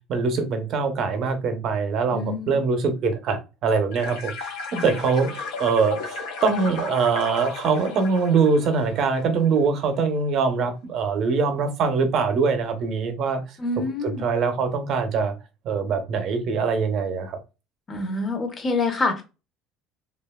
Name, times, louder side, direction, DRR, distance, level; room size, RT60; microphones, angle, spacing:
voice 1, 0.1-13.4 14.0-15.3 15.6-17.4, right 5 dB, 55° right, 0.6 m, -23 dB
voice 2, 2.1-2.6 4.7-4.8 13.6-14.3 17.9-19.2, left 3 dB, 30° left, 0.8 m, -26 dB
sound 1, 3.9-9.6, left 4 dB, 80° left, 0.7 m, -34 dB
2.8 x 2.3 x 2.2 m
supercardioid pair, 105°, 0 cm